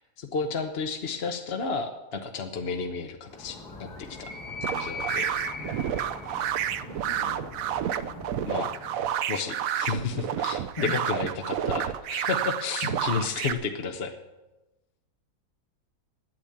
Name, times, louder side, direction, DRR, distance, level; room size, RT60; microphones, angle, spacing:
voice 1, 0.2-3.9 4.7-5.3 8.5-8.7 9.3-14.1, left 5 dB, 50° left, 5 dB, 0.9 m, -32 dB
Animal, 3.2-9.1, left 4 dB, 90° left, 2.7 m, -40 dB
sound 1, 4.6-13.5, right 10 dB, 70° right, 1.0 m, -30 dB
voice 2, 6.8-7.5 10.8-11.0 12.8-12.9, left 4 dB, 20° left, 4 dB, 1.3 m, -36 dB
9.9 x 9.1 x 8.5 m, 1.1 s
omnidirectional pair, 1.7 m